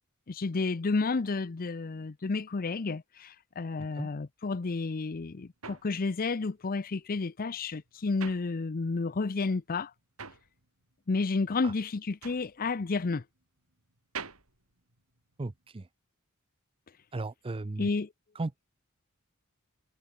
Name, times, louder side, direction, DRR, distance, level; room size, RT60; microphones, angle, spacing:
voice 1, 0.3-9.9 11.1-13.2 17.8-18.1, left 3 dB, 45° left, 0.6 m, -31 dB
sound 1, 4.9-9.2 9.4-15.7, right 5 dB, 90° right, 7.6 m, -47 dB
voice 2, 15.4-15.9 17.1-17.9 18.4-18.5, right 2 dB, 25° right, 0.5 m, -36 dB
head